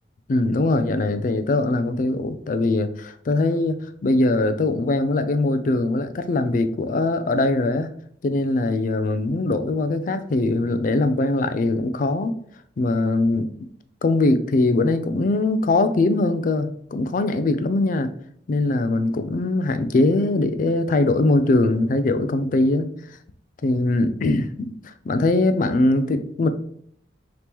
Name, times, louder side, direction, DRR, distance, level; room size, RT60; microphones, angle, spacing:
voice 1, 0.3-7.9 8.2-12.3 12.8-13.5 14.0-18.1 18.5-22.9 23.6-26.5, left 2 dB, 45° left, 10 dB, 0.4 m, -21 dB
5.2 x 2.9 x 3.0 m, 0.65 s
head